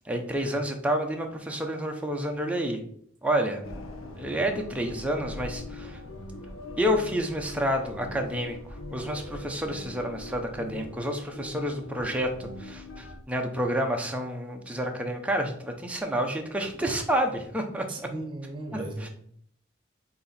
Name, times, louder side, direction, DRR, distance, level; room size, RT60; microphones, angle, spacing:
voice 1, 0.1-2.8 3.2-3.6 4.2-6.0 6.8-8.6 8.9-17.8 18.7-18.8, equal, 5° right, 2 dB, 0.8 m, -29 dB
sound 1, 3.6-13.2, left 2 dB, 80° left, 0.8 m, -41 dB
voice 2, 17.9-19.1, right 2 dB, 25° right, 3 dB, 1.1 m, -37 dB
7.6 x 2.9 x 4.2 m, 0.64 s
head